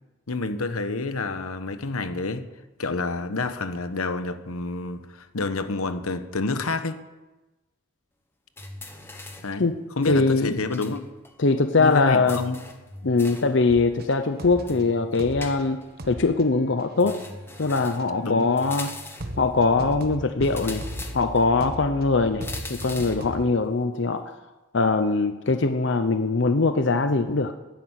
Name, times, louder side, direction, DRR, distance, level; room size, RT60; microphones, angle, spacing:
voice 1, 0.3-2.5 2.8-7.0 9.4-9.7 10.0-11.1 11.8-12.6 18.2-18.5, left 3 dB, 90° left, 10 dB, 1.1 m, -28 dB
sound 1, 8.6-9.6 10.0-11.0 11.2-11.3 12.3-13.6 14.7-15.9 17.0-18.1 18.6-19.4 20.4-21.5 22.4-23.3, left 2 dB, 10° left, 1.3 m, -40 dB
voice 2, 10.1-10.6 11.4-12.4 13.0-17.2 17.6-18.9 19.4-20.8 21.1-24.3 24.7-27.5, left 3 dB, 55° left, 9 dB, 0.7 m, -22 dB
sound 2, 13.7-14.9 15.2-15.6 16.0-18.4 18.8-18.9 19.2-23.6, right 1 dB, 45° right, 1.3 m, -37 dB
11.5 x 10.5 x 8.2 m, 1.1 s
head